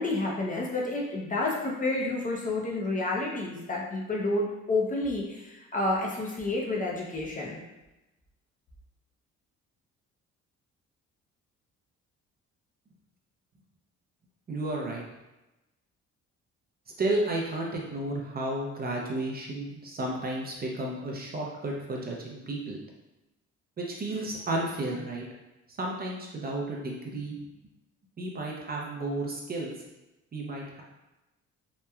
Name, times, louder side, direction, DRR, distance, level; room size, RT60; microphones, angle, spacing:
voice 1, 0.0-7.6, left 2 dB, 25° left, -2 dB, 0.5 m, -30 dB
voice 2, 14.5-15.0 17.0-22.8 23.8-25.2 25.8-27.4 28.2-29.7 30.3-30.8, right 2 dB, 30° right, -1 dB, 0.5 m, -32 dB
3.0 x 2.1 x 2.3 m, 1.0 s
cardioid pair, 90°, 30 cm